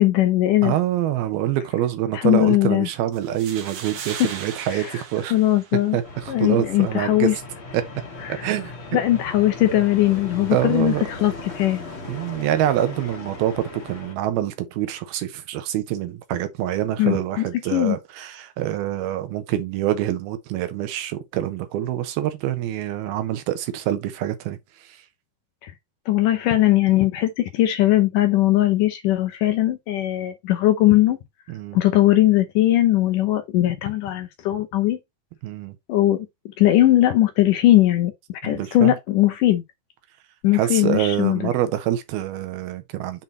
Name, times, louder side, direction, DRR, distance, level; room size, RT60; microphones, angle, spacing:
voice 1, 0.0-0.8 2.1-2.9 4.7-5.0 5.3-6.0 6.3-7.4 8.2-8.5 8.9-11.8 17.0-17.5 17.7-18.0 25.6-25.7 26.1-31.2 31.7-35.0 35.9-36.3 36.6-39.6 40.4-41.5, left 14 dB, 70° left, 2.1 m, -19 dB
voice 2, 0.6-5.3 5.9-7.3 7.7-7.8 8.4-9.0 10.5-11.0 12.1-24.6 31.5-31.8 35.4-35.8 38.4-38.9 40.5-43.2, right 12 dB, 80° right, 2.9 m, -25 dB
sound 1, 3.1-6.1, right 7 dB, 65° right, 1.5 m, -37 dB
sound 2, 6.0-14.1, left 3 dB, 40° left, 2.3 m, -37 dB
7.2 x 4.0 x 4.1 m
omnidirectional pair, 4.4 m